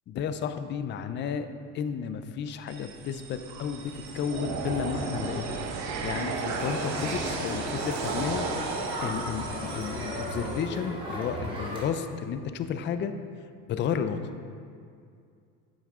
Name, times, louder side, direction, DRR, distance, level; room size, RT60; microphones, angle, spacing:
voice 1, 0.1-1.5 1.7-5.6 6.0-8.5 9.0-13.1 13.7-14.3, left 7 dB, 35° left, 9 dB, 0.4 m, -32 dB
sound 1, 2.7-10.6, right 4 dB, 60° right, 1.0 m, -34 dB
Crowd, 6.6-11.8, equal, 15° right, 1.9 m, -35 dB
9.2 x 7.4 x 3.6 m, 2.3 s
cardioid pair, 125°, 32 cm